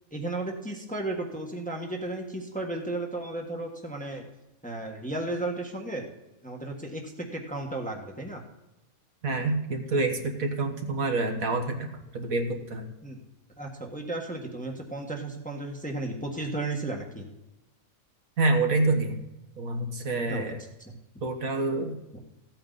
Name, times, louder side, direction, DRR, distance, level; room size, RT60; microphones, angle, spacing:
voice 1, 0.1-4.2 4.6-6.1 6.4-8.4 13.0-13.2 13.6-17.3 20.3-20.5 20.8-21.0, right 2 dB, 5° left, 1 dB, 1.3 m, -34 dB
voice 2, 9.2-11.9 12.1-12.8 18.4-19.2 19.6-20.6 21.2-22.0, right 2 dB, 65° right, 4 dB, 1.7 m, -27 dB
15.5 x 8.8 x 4.0 m, 0.97 s
omnidirectional pair, 1.6 m